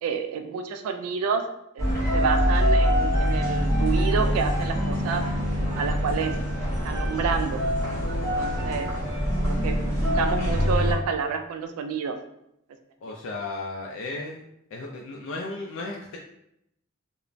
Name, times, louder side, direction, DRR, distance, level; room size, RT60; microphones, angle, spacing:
voice 1, 0.0-1.4 1.8-5.3 5.8-6.4 6.8-7.6 8.2-8.9 9.4-12.2, right 6 dB, 85° right, 11 dB, 0.3 m, -29 dB
sound 1, 1.8-10.9, equal, 15° left, 1.0 m, -24 dB
voice 2, 13.0-14.4 14.7-16.2, left 3 dB, 65° left, -1 dB, 0.3 m, -35 dB
3.1 x 2.0 x 2.4 m, 0.78 s
head